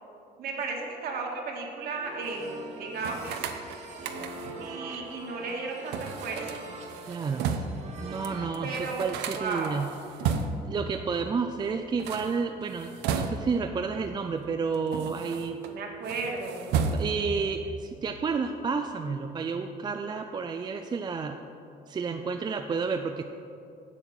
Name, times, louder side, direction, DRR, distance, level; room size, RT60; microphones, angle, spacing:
voice 1, 0.4-3.4 4.6-6.6 8.6-9.8 15.7-16.8, right 4 dB, 65° right, 0 dB, 1.8 m, -34 dB
sound 1, 1.9-8.5, right 2 dB, 45° right, 1.5 m, -43 dB
sound 2, 3.0-4.7 5.9-7.9 8.2-8.3 8.5-10.8 11.8-13.7 14.4-15.7 16.0-17.4, right 6 dB, 85° right, 0.7 m, -33 dB
voice 2, 7.1-7.5 8.0-9.9 10.6-15.6 16.9-21.4 21.9-23.2, right 5 dB, 25° right, 6 dB, 0.4 m, -31 dB
8.0 x 7.5 x 6.2 m, 2.7 s
cardioid pair, 110°, 17 cm